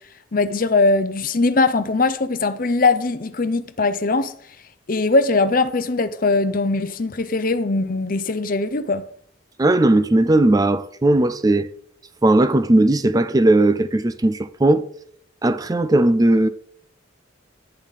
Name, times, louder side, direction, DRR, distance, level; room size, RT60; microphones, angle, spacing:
voice 1, 0.3-4.3 4.9-9.0, left 3 dB, 45° left, 0.7 m, -20 dB
voice 2, 9.6-11.7 12.2-14.9 15.4-16.5, right 2 dB, 20° right, 0.4 m, -17 dB
10.5 x 10.0 x 4.1 m
head